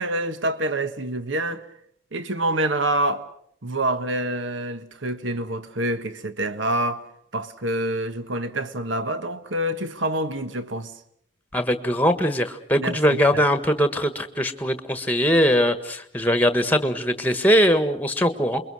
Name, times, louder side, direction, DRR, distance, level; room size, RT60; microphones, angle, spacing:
voice 1, 0.0-1.7 2.1-3.2 3.6-7.0 7.3-10.9 12.8-13.4, right 1 dB, 70° right, 1.4 m, -27 dB
voice 2, 11.5-18.6, equal, 10° left, 1.4 m, -21 dB
28.0 x 22.5 x 6.3 m
head